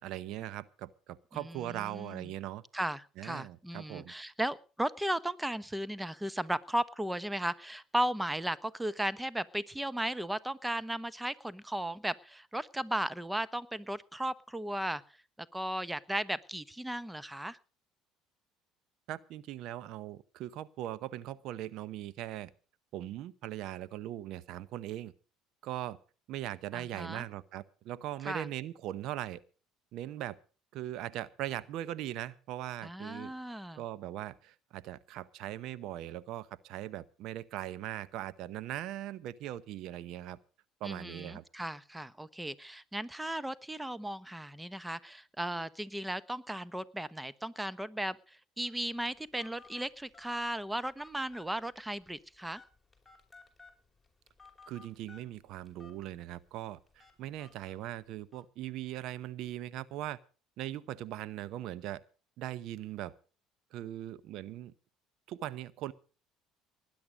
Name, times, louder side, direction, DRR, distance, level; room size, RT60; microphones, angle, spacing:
voice 1, 0.0-2.6 3.2-4.1 19.1-22.5 22.9-25.1 25.6-26.0 26.3-29.4 29.9-30.4 30.7-33.3 33.7-40.4 40.8-41.4 54.7-60.2 60.6-62.0 62.4-63.1 63.7-64.7 65.3-65.9, right 13 dB, 65° right, 0.8 m, -40 dB
voice 2, 1.3-2.3 2.7-15.0 15.5-17.6 26.7-27.2 28.2-28.5 32.8-33.8 40.8-52.6, right 1 dB, 10° right, 1.0 m, -36 dB
Telephone, 48.6-58.4, left 4 dB, 5° left, 5.3 m, -60 dB
19.5 x 10.5 x 5.1 m
hypercardioid pair, 70°, 0 cm